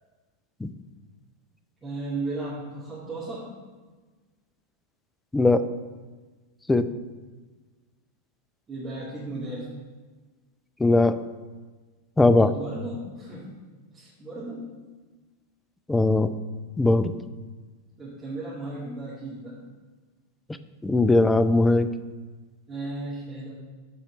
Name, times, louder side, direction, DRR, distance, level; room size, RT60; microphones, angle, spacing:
voice 1, 1.8-3.5 8.7-9.7 12.5-13.5 13.9-14.6 18.0-19.6 22.7-23.5, right 2 dB, 20° right, -10 dB, 2.2 m, -35 dB
voice 2, 10.8-11.2 12.2-12.5 15.9-16.3 16.8-17.2 20.8-21.9, left 2 dB, 10° left, 11 dB, 0.4 m, -19 dB
8.4 x 4.3 x 5.9 m, 1.3 s
figure-of-eight pair, 90°, 0 cm